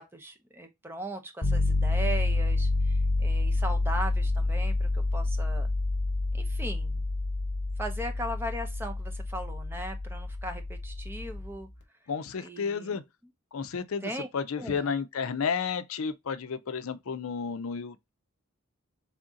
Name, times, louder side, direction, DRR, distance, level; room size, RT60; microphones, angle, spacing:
voice 1, 0.0-5.7 6.3-7.0 7.8-11.7 12.4-13.0 14.0-14.3 14.6-14.9, right 1 dB, 10° right, 0.6 m, -38 dB
sound 1, 1.4-11.5, left 2 dB, 50° left, 0.9 m, -28 dB
voice 2, 12.1-13.0 13.5-18.1, left 6 dB, 75° left, 0.5 m, -32 dB
3.5 x 2.7 x 3.7 m
head